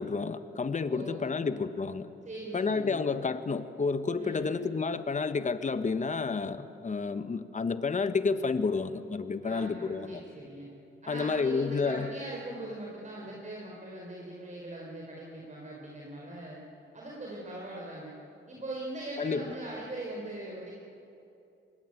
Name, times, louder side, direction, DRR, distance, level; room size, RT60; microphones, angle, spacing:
voice 1, 0.0-2.1 2.5-10.2 11.1-12.1 19.2-19.4, left 4 dB, 35° left, 11 dB, 1.4 m, -30 dB
voice 2, 0.9-1.5 2.2-3.0 4.2-4.6 9.4-10.7 11.0-16.6 16.9-18.2 18.5-20.7, right 1 dB, 35° right, -3 dB, 4.7 m, -41 dB
24.5 x 21.0 x 9.2 m, 2.8 s
cardioid pair, 85°, 21 cm